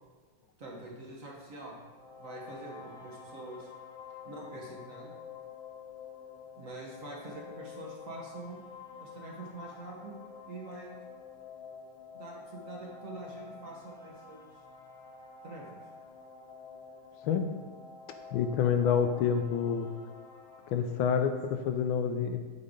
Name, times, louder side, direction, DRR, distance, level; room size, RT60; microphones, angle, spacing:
voice 1, 0.6-1.8 2.2-3.7 4.2-5.1 6.6-8.6 9.0-11.0 12.1-14.5 15.4-15.8, right 2 dB, 45° right, -2 dB, 1.4 m, -45 dB
sound 1, 1.9-20.7, left 5 dB, 30° left, 0.6 m, -49 dB
voice 2, 18.3-19.9 20.7-22.4, left 7 dB, 90° left, 7 dB, 1.4 m, -28 dB
7.9 x 5.4 x 3.8 m, 1.5 s
omnidirectional pair, 2.2 m